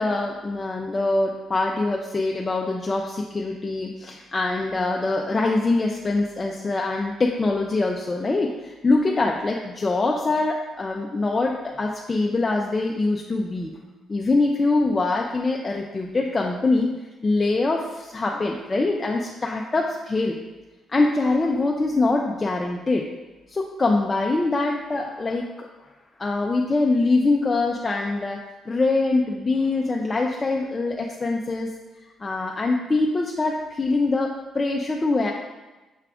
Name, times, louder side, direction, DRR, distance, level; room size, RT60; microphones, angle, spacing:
voice 1, 0.0-13.7 14.1-16.9 17.2-20.4 20.9-23.1 23.5-25.7 26.2-28.4 28.7-31.7 32.2-35.3, left 3 dB, 25° left, 0 dB, 0.3 m, -23 dB
5.8 x 2.4 x 3.4 m, 1.1 s
cardioid pair, 90°, 0 cm